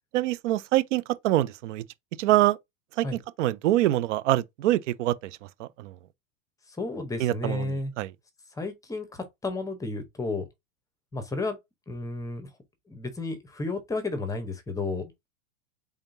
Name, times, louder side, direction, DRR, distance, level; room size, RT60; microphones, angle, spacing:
voice 1, 0.1-1.8 2.2-2.6 3.0-3.1 3.4-5.1 5.6-5.9 7.2-8.1, right 15 dB, 70° right, 0.6 m, -24 dB
voice 2, 6.8-7.9 8.6-10.5 11.1-11.6 11.9-12.5 12.9-15.1, left 3 dB, 10° left, 0.7 m, -32 dB
3.6 x 3.4 x 2.6 m
hypercardioid pair, 130°, 39 cm